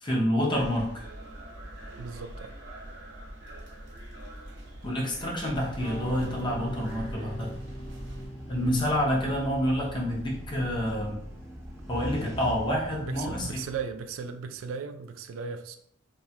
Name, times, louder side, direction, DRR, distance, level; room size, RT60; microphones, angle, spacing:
voice 1, 0.0-1.0 4.8-7.5 8.5-11.2 11.9-13.6, equal, 25° left, -2 dB, 0.6 m, -28 dB
sound 1, 0.5-8.3, right 1 dB, 60° right, 0.8 m, -43 dB
voice 2, 2.0-2.5 8.5-8.8 13.0-15.8, right 5 dB, 85° right, 8 dB, 0.3 m, -37 dB
sound 2, 5.5-14.6, equal, 15° right, 0.6 m, -41 dB
sound 3, 5.8-10.6, right 1 dB, 60° left, 0.7 m, -42 dB
2.9 x 2.2 x 2.8 m, 0.68 s
head